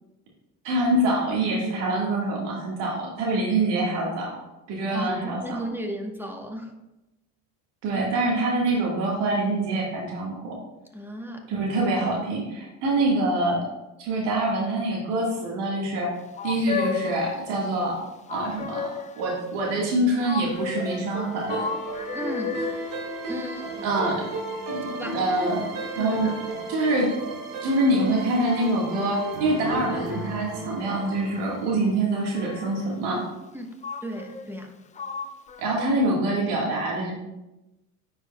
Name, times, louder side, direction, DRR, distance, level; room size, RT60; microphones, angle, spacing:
voice 1, 0.6-4.3 4.7-5.6 7.8-10.6 11.5-13.7 14.0-16.1 16.4-18.0 18.3-21.7 23.8-24.3 24.7-25.7 26.0-26.3 26.7-27.1 27.6-33.3 35.6-37.1, right 2 dB, 65° right, -2 dB, 1.6 m, -25 dB
voice 2, 4.9-6.7 10.9-11.5 22.1-22.6 23.3-23.9 25.0-25.2 26.0-26.2 33.5-33.7 34.0-34.7, equal, 5° right, 3 dB, 1.0 m, -34 dB
sound 1, 16.4-17.5 18.3-19.3 20.2-22.9 29.7-29.8 30.6-31.5 32.1-33.0 33.8-34.7 34.9-35.9, left 6 dB, 20° left, 0.3 m, -33 dB
sound 2, 20.8-32.0, right 2 dB, 50° right, 1.8 m, -35 dB
9.4 x 4.7 x 2.2 m, 0.97 s
hypercardioid pair, 75°, 44 cm